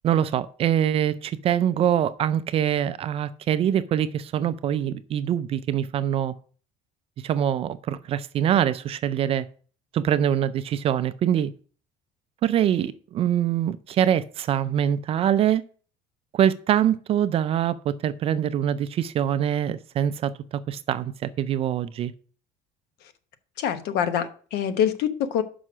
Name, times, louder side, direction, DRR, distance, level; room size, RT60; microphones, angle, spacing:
voice 1, 0.0-6.3 7.2-9.5 9.9-11.5 12.4-15.6 16.3-20.3 20.7-22.1, right 10 dB, 35° right, 13 dB, 0.3 m, -24 dB
voice 2, 23.6-25.4, left 9 dB, 60° left, 11 dB, 1.0 m, -25 dB
6.2 x 5.5 x 6.0 m, 0.42 s
cardioid pair, 170°, 18 cm